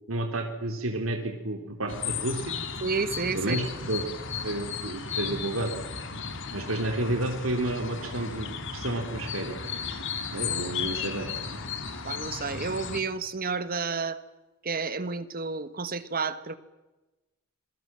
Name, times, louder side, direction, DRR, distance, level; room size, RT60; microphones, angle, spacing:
voice 1, 0.1-2.5 3.3-4.0 4.4-5.7 6.5-9.6 10.3-11.3, right 1 dB, 85° right, 4 dB, 3.6 m, -31 dB
sound 1, 1.9-13.0, left 5 dB, 65° left, 3.0 m, -35 dB
voice 2, 2.8-3.6 12.0-14.2 14.6-16.5, right 4 dB, 45° right, 13 dB, 1.5 m, -30 dB
27.5 x 22.5 x 7.6 m, 1.1 s
head